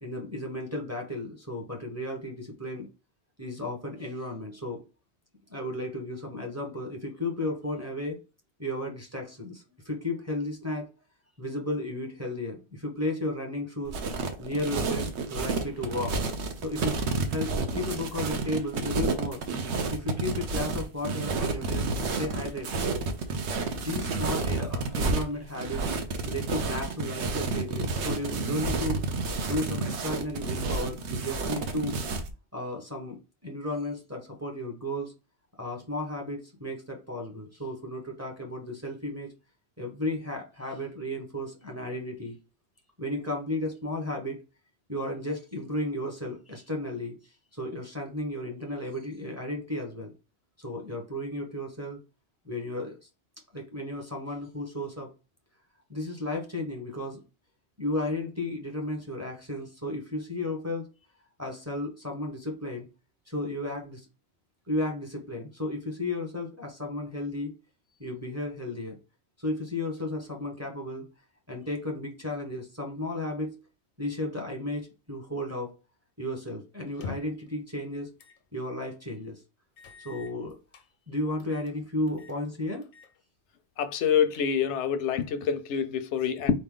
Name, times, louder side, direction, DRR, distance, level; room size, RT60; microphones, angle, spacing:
voice 1, 0.0-2.9 3.4-4.8 5.5-8.2 8.6-10.9 11.4-14.0 14.4-16.2 16.6-19.4 19.9-22.8 23.7-25.9 26.2-29.0 29.4-32.0 32.5-35.1 35.6-39.3 39.8-42.4 43.0-44.4 44.9-50.1 50.6-52.0 52.4-53.0 53.5-55.1 55.9-57.2 57.8-60.9 61.4-62.9 63.3-64.1 64.7-67.5 68.0-69.0 69.4-71.0 71.5-73.6 74.0-75.7 76.2-78.1 78.5-79.4 80.0-80.6 81.1-82.9, left 1 dB, 15° right, 0.8 m, -34 dB
sound 1, 13.9-32.3, right 3 dB, 80° right, 1.0 m, -30 dB
sound 2, 76.9-77.5 78.2-78.4 78.8-78.9 79.8-80.9 81.4-81.8 82.1-82.4 82.8-83.1 83.5-83.6 84.0-84.8, left 4 dB, 55° left, 0.6 m, -45 dB
voice 2, 83.8-86.5, left 8 dB, 85° left, 0.9 m, -26 dB
4.2 x 3.2 x 3.7 m
omnidirectional pair, 1.1 m